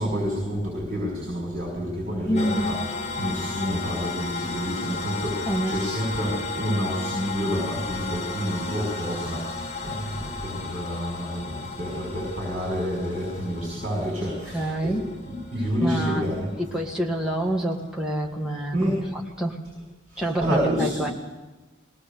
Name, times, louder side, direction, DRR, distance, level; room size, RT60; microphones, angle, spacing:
voice 1, 0.0-2.7 3.2-9.5 9.8-16.5 18.7-18.9 20.1-21.0, equal, 40° right, -3 dB, 5.6 m, -29 dB
voice 2, 2.2-2.8 5.5-5.8 14.5-15.0 15.6-16.3 16.6-19.6 20.2-21.1, right 1 dB, 5° right, -1 dB, 1.7 m, -27 dB
sound 1, 2.3-19.4, left 4 dB, 35° left, 1.8 m, -35 dB
21.0 x 18.5 x 6.8 m, 1.2 s
head